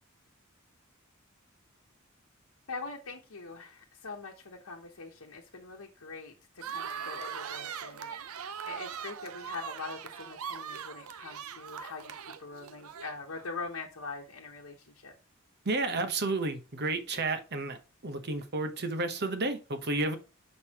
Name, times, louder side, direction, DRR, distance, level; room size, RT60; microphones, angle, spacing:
voice 1, 2.7-12.1 12.4-15.1, left 4 dB, 75° left, 1.1 m, -43 dB
sound 1, 6.6-13.5, right 7 dB, 90° right, 0.6 m, -41 dB
voice 2, 15.6-20.2, right 2 dB, 50° right, 1.0 m, -31 dB
6.4 x 5.4 x 2.9 m
head